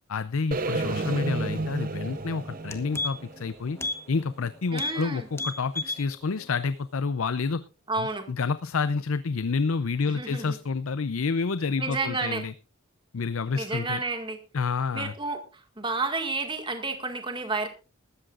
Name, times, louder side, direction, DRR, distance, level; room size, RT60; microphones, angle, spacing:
voice 1, 0.1-3.8 4.1-7.6 8.0-12.5 13.1-14.0 14.5-15.1, left 4 dB, 80° left, 14 dB, 0.6 m, -29 dB
sound 1, 0.5-4.6, right 2 dB, 40° right, 0.7 m, -32 dB
sound 2, 2.1-2.2 2.5-3.4 3.8-4.0 4.3-4.4 4.7-5.0 5.3-6.0 6.4-6.5, left 2 dB, 15° left, 1.2 m, -32 dB
voice 2, 4.7-5.3 7.9-8.3 10.1-10.6 11.8-12.4 13.6-14.4 14.9-17.7, right 3 dB, 25° right, 5 dB, 2.0 m, -31 dB
19.5 x 13.5 x 2.5 m, 0.32 s
head